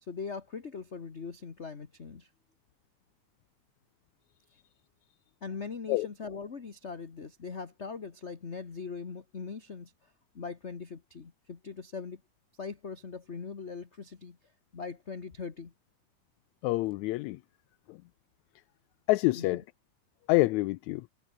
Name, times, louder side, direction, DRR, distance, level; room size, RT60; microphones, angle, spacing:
voice 1, 0.0-2.3 5.4-12.2 12.6-14.4 14.7-15.7 19.3-19.6, left 5 dB, 35° left, 1.1 m, -41 dB
voice 2, 16.6-17.4 17.9-18.0 19.1-19.6 20.3-21.1, left 20 dB, 80° left, 1.9 m, -27 dB
omnidirectional pair, 3.5 m